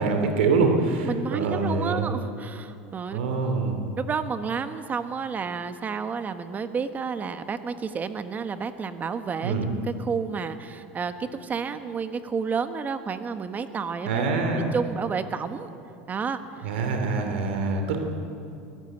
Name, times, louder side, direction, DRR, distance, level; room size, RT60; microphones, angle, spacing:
voice 1, 0.0-2.1 3.1-3.9 9.4-9.7 14.0-14.7 16.6-18.0, right 4 dB, 85° right, 5 dB, 3.0 m, -25 dB
voice 2, 1.0-3.2 4.0-14.2 14.5-15.7 16.1-16.4, right 5 dB, 30° right, 10 dB, 1.3 m, -31 dB
20.5 x 14.5 x 9.1 m, 2.6 s
supercardioid pair, 110°, 6 cm